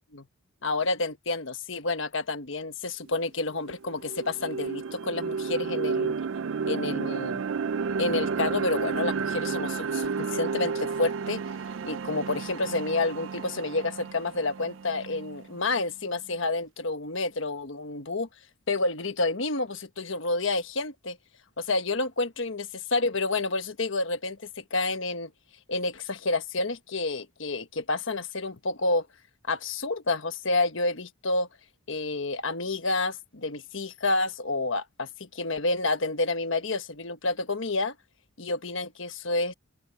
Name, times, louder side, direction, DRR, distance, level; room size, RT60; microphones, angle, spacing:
voice 1, 0.6-6.1 6.6-7.4 8.0-11.4 11.9-18.3 18.7-21.2 21.6-25.3 25.7-29.1 29.5-31.5 31.9-37.9 38.4-39.5, left 2 dB, 60° left, 1.3 m, -29 dB
sound 1, 3.1-3.2 3.6-15.7, right 5 dB, 60° right, 0.4 m, -32 dB
open air
head